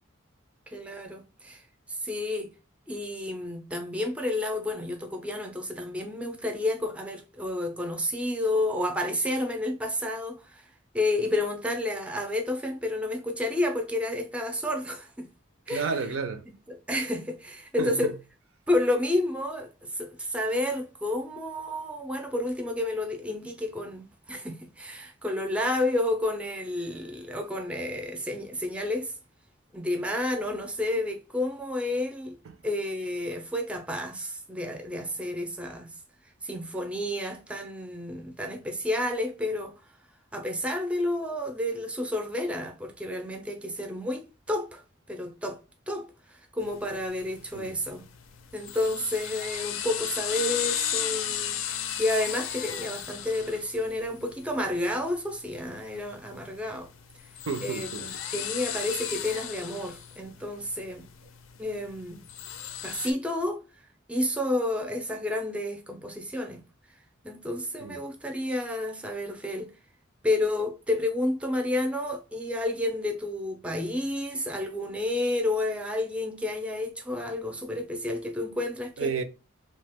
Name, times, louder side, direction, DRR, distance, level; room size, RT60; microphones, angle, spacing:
voice 1, 0.7-1.6 1.9-2.5 2.9-10.7 10.9-15.3 15.7-15.9 16.7-18.1 18.7-29.1 29.7-32.4 32.6-35.9 36.4-39.7 40.3-44.8 45.1-45.6 45.9-48.1 48.5-51.6 52.0-56.9 57.6-61.1 61.6-62.2 62.8-63.6 64.1-66.6 67.2-69.7 70.2-79.1, left 1 dB, 5° right, 0.3 m, -30 dB
voice 2, 15.7-16.4 17.8-18.1 32.5-32.6 47.5-47.7 57.5-58.1 67.8-68.0 79.0-79.2, right 5 dB, 80° right, 0.5 m, -31 dB
sound 1, 46.6-63.1, left 9 dB, 80° left, 0.4 m, -36 dB
2.8 x 2.2 x 3.3 m
head